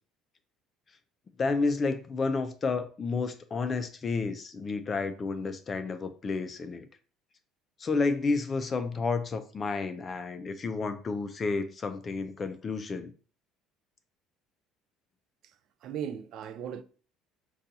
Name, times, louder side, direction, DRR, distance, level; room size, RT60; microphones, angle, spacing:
voice 1, 1.4-6.9 7.8-13.1, left 4 dB, 25° left, 0.3 m, -31 dB
voice 2, 15.8-16.8, right 8 dB, 50° right, 0.3 m, -37 dB
3.9 x 2.3 x 2.7 m
cardioid pair, 145°, 0 cm